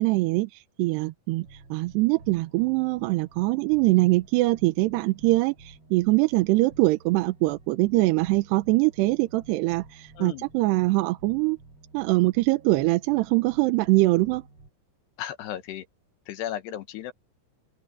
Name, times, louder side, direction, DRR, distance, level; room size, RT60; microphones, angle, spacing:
voice 1, 0.0-11.6 11.9-14.4, right 21 dB, 90° right, 2.9 m, -23 dB
sound 1, 1.4-14.7, right 3 dB, 35° right, 5.1 m, -51 dB
voice 2, 10.2-10.5 15.2-15.9 16.3-17.1, left 11 dB, 85° left, 3.5 m, -35 dB
omnidirectional pair, 4.7 m